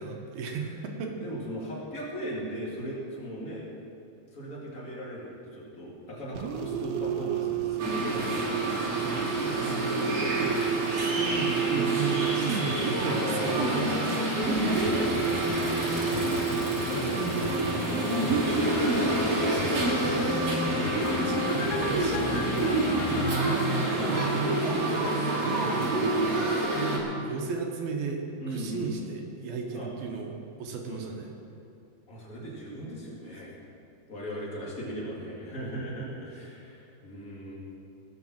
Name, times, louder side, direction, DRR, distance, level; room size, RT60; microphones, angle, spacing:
voice 1, 0.0-1.2 8.8-13.8 15.7-17.6 18.2-24.8 25.6-26.5 27.2-31.3, right 4 dB, 70° right, 2 dB, 2.9 m, -35 dB
voice 2, 1.1-3.7 4.3-8.5 13.0-15.6 20.7-21.0 23.9-25.0 25.3-25.8 28.4-29.0 29.7-29.9 30.9-31.0 32.1-33.6 34.1-37.6, equal, 25° left, -6 dB, 2.7 m, -37 dB
sound 1, 6.4-12.9 14.4-16.8, right 8 dB, 85° right, 2.9 m, -31 dB
sound 2, 7.8-27.0, right 2 dB, 45° right, 2.4 m, -28 dB
sound 3, 14.9-24.2 24.7-24.8, left 6 dB, 80° left, 2.9 m, -35 dB
18.5 x 6.9 x 7.4 m, 2.6 s
omnidirectional pair, 4.7 m